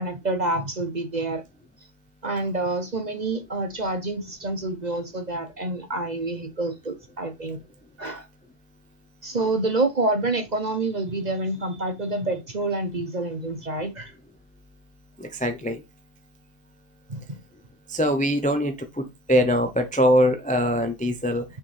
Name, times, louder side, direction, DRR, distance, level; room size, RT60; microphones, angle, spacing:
voice 1, 0.0-1.4 2.2-7.6 8.0-8.3 9.2-14.1 17.1-17.4, right 2 dB, 35° right, 0.9 m, -27 dB
voice 2, 15.2-15.8 17.9-18.7 19.3-21.4, equal, 10° left, 0.5 m, -22 dB
6.2 x 4.8 x 3.4 m
omnidirectional pair, 1.6 m